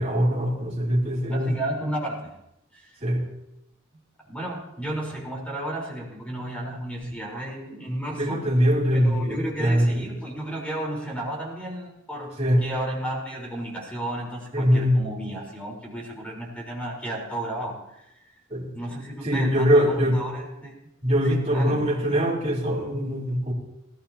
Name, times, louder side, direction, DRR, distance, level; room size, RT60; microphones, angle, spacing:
voice 1, 0.0-1.5 3.0-3.2 7.9-10.0 12.4-12.6 14.5-15.0 18.5-18.7 19.2-20.2 21.0-23.5, equal, 35° right, -4 dB, 3.8 m, -22 dB
voice 2, 1.3-2.3 2.7-3.0 4.3-8.5 9.0-12.3 12.6-18.3 18.7-20.7 21.2-21.8, right 1 dB, 5° left, -3 dB, 4.1 m, -33 dB
19.0 x 15.5 x 2.9 m, 0.85 s
head